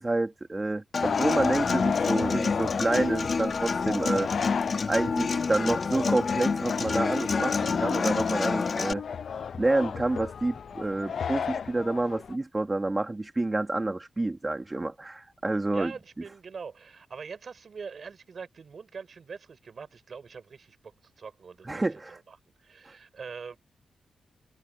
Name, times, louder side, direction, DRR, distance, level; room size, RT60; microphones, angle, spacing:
voice 1, 0.0-4.3 4.9-9.0 9.5-15.9 21.6-22.2, right 2 dB, 20° right, 3.3 m, -28 dB
Human voice / Acoustic guitar, 0.9-8.9, left 4 dB, 40° left, 3.2 m, -28 dB
sound 1, 1.0-12.4, left 7 dB, 60° left, 0.5 m, -34 dB
voice 2, 15.7-22.4 22.6-23.6, right 5 dB, 50° right, 6.9 m, -43 dB
wide cardioid pair, 130°, 0 cm